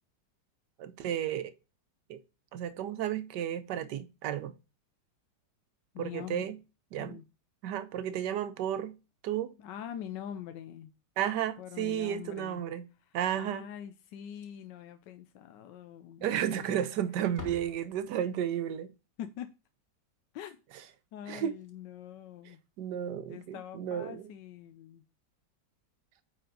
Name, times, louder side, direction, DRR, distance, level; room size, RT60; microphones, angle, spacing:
voice 1, 0.8-1.5 2.1-2.2 2.5-4.5 6.0-6.6 6.9-7.2 7.6-9.0 9.2-9.5 11.2-12.8 13.1-13.7 16.2-18.9 21.3-21.5 22.8-24.2, right 10 dB, 75° right, 1.3 m, -33 dB
voice 2, 5.9-6.5 7.0-7.2 9.6-10.9 11.6-12.6 13.1-16.8 19.2-19.5 20.3-20.6 21.1-22.6 23.3-25.0, left 10 dB, 75° left, 1.3 m, -44 dB
Slam, 14.2-14.8 15.1-15.2 15.7-15.8 16.6-16.9 17.2-18.5 21.2-21.3 21.5-21.7 23.2-23.4, left 3 dB, 15° left, 0.6 m, -49 dB
9.2 x 4.3 x 3.8 m
omnidirectional pair, 1.9 m